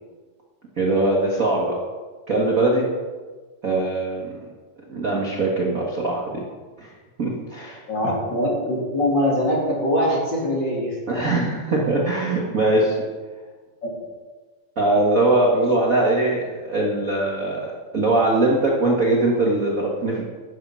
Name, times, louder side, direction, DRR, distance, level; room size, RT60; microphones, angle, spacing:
voice 1, 0.8-1.8 2.3-2.9 3.6-4.3 4.9-6.4 6.8-6.9 7.2-7.8 11.1-13.0 14.8-20.2, right 2 dB, 45° right, -2 dB, 1.1 m, -21 dB
voice 2, 7.9-11.0 13.8-13.9 15.6-15.7, left 1 dB, 35° left, -3 dB, 2.8 m, -22 dB
11.0 x 10.5 x 5.7 m, 1.4 s
omnidirectional pair, 4.0 m